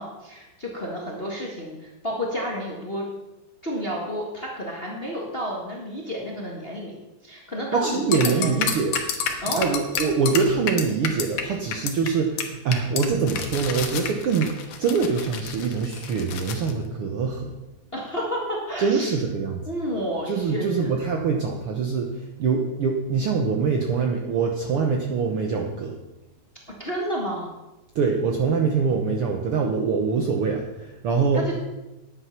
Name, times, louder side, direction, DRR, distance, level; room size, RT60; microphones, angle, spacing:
voice 1, 0.0-3.0 3.6-8.6 9.4-9.6 17.9-19.1 19.7-20.9 26.8-27.5 31.3-31.5, equal, 25° left, -2 dB, 1.3 m, -31 dB
voice 2, 7.7-9.0 9.3-14.5 14.8-17.5 18.8-19.6 20.3-25.9 27.9-31.4, right 5 dB, 65° right, 2 dB, 1.4 m, -24 dB
sound 1, 8.1-11.4 11.7-12.1 12.4-12.5 12.7-16.7, left 7 dB, 85° left, 2.7 m, -29 dB
10.5 x 9.3 x 5.8 m, 1.0 s
omnidirectional pair, 3.6 m